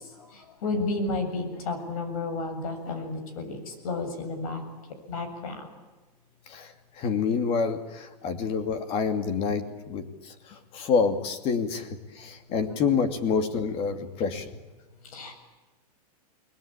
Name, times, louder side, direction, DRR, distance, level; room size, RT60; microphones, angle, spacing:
voice 1, 0.0-4.7 5.1-5.7 12.2-12.3 12.7-12.8 15.0-15.3, left 3 dB, 60° left, 8 dB, 7.6 m, -32 dB
voice 2, 6.5-14.5, left 5 dB, 30° left, 8 dB, 2.6 m, -28 dB
29.5 x 21.0 x 8.9 m, 1.2 s
supercardioid pair, 165°, 20 cm